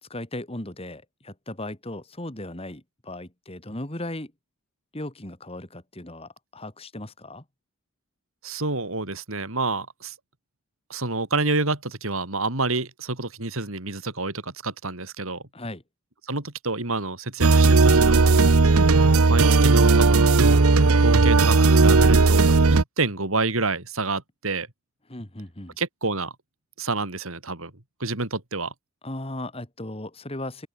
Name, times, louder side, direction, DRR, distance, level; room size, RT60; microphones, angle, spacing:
voice 1, 0.0-4.3 4.9-7.4 15.5-15.8 25.1-25.8 29.0-30.7, left 1 dB, 25° left, 2.4 m, -36 dB
voice 2, 8.4-10.1 10.9-15.4 16.3-18.3 19.3-20.4 21.0-24.7 25.8-26.3 26.8-27.7 28.0-28.7, right 3 dB, 70° right, 3.5 m, -28 dB
sound 1, 17.4-22.8, right 3 dB, 85° right, 0.9 m, -16 dB
open air
head